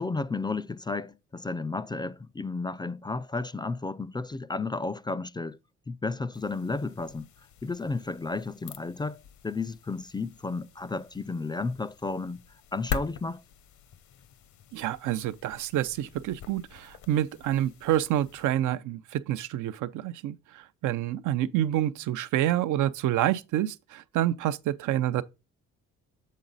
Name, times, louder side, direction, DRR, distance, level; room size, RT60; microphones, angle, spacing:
voice 1, 0.0-5.6 5.9-7.3 7.6-12.4 12.7-13.4, left 3 dB, 15° left, 0.3 m, -33 dB
sound 1, 6.3-18.5, left 7 dB, 70° left, 0.8 m, -43 dB
voice 2, 14.7-20.4 20.8-25.2, right 12 dB, 85° right, 0.6 m, -28 dB
7.4 x 4.0 x 3.9 m
cardioid pair, 90°, 30 cm